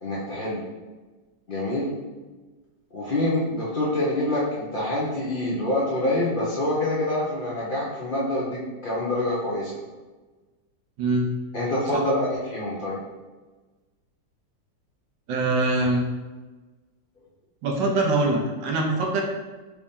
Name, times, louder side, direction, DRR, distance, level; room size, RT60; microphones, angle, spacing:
voice 1, 0.0-0.6 1.5-1.9 2.9-9.7 11.5-13.0, left 1 dB, 65° left, -7 dB, 0.5 m, -26 dB
voice 2, 15.3-16.0 17.6-19.2, right 2 dB, 75° right, 1 dB, 1.4 m, -23 dB
4.6 x 2.7 x 3.5 m, 1.2 s
omnidirectional pair, 2.0 m